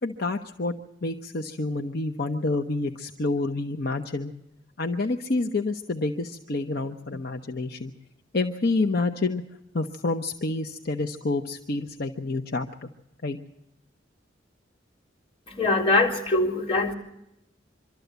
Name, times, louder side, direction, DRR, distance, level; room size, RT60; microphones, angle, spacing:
voice 1, 0.0-4.3 4.8-7.9 8.3-9.4 9.7-12.9 13.2-13.4, left 2 dB, 55° left, 4 dB, 0.9 m, -28 dB
voice 2, 15.5-16.9, left 2 dB, 30° left, -3 dB, 3.8 m, -23 dB
25.0 x 13.0 x 8.1 m, 0.88 s
head